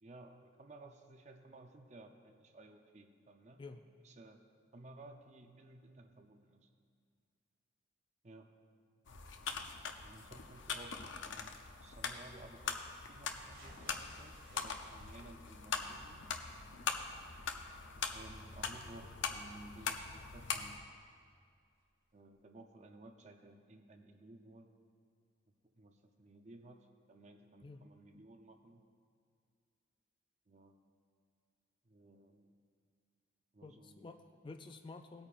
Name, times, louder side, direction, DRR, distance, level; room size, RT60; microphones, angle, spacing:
voice 1, 0.0-3.6 4.0-4.4 4.7-6.7 8.2-8.5 10.0-12.8 13.1-16.2 18.1-20.8 22.1-24.7 25.7-28.8 30.5-30.8 31.8-32.5 33.5-34.1, right 2 dB, 35° right, 5 dB, 0.6 m, -56 dB
sound 1, 9.1-20.8, left 5 dB, 70° left, 0.6 m, -42 dB
sound 2, 13.5-21.4 21.8-21.9 22.3-22.4, right 1 dB, 65° right, 2.1 m, -62 dB
voice 2, 33.6-35.3, left 3 dB, 25° left, 7 dB, 0.3 m, -51 dB
18.0 x 8.7 x 2.5 m, 2.2 s
head